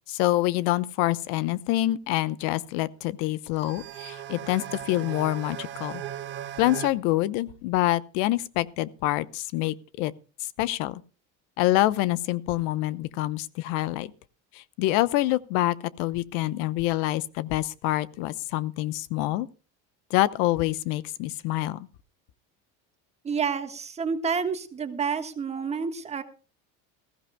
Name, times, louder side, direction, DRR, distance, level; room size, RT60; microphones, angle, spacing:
voice 1, 0.1-6.0 6.6-10.1 10.4-11.0 11.6-14.1 14.5-19.5 20.1-21.9, left 16 dB, 75° left, 0.9 m, -26 dB
sound 1, 3.6-6.9, right 11 dB, 35° right, 1.3 m, -37 dB
voice 2, 23.2-26.2, right 6 dB, 20° right, 1.4 m, -29 dB
20.0 x 15.5 x 2.2 m
cardioid pair, 165°, 32 cm